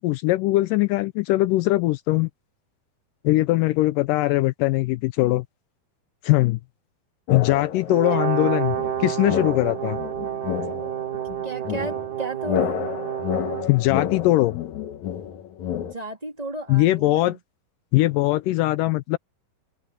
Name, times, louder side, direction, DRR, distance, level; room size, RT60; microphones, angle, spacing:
voice 1, 0.0-2.3 3.2-5.5 6.2-6.6 7.3-10.0 13.7-14.5 16.7-17.4 17.9-19.2, left 17 dB, 90° left, 1.9 m, -21 dB
sound 1, 7.3-8.1 8.7-15.9, left 10 dB, 60° left, 2.1 m, -30 dB
Brass instrument, 7.9-13.7, right 11 dB, 75° right, 4.3 m, -29 dB
voice 2, 11.4-12.7 15.8-17.4, right 2 dB, 10° right, 2.4 m, -33 dB
open air
omnidirectional pair, 4.5 m